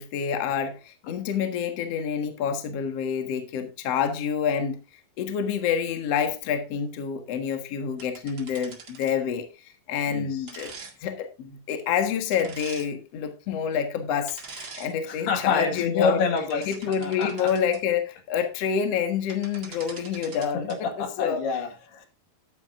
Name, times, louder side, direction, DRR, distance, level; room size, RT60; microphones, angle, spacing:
voice 1, 0.0-4.8 5.2-9.5 9.9-10.7 11.0-16.3 16.7-21.4, left 7 dB, 55° left, 2.0 m, -28 dB
sound 1, 8.0-9.2 10.5-10.9 12.3-12.9 14.3-14.9 15.4-15.6 16.2-17.8 19.0-19.1 19.3-20.8, right 4 dB, 40° right, 1.6 m, -43 dB
voice 2, 10.1-10.5 15.1-16.7 17.0-17.5 20.5-22.1, left 5 dB, 85° left, 4.0 m, -28 dB
13.5 x 10.5 x 2.6 m
omnidirectional pair, 4.5 m